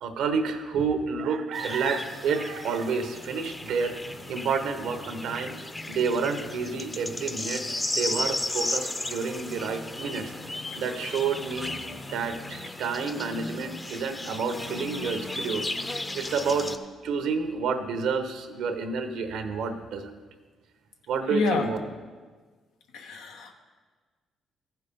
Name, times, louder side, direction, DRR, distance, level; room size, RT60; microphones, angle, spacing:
voice 1, 0.0-4.0 4.3-5.5 5.9-7.7 8.0-10.3 10.7-11.7 12.1-16.7 17.0-20.2 21.1-21.8, right 5 dB, 80° right, 8 dB, 0.9 m, -29 dB
sound 1, 1.5-16.8, left 2 dB, 20° left, 0.6 m, -35 dB
voice 2, 21.3-21.7 22.9-23.5, left 3 dB, 90° left, 3 dB, 1.1 m, -27 dB
14.0 x 5.7 x 5.3 m, 1.4 s
cardioid pair, 90°, 0 cm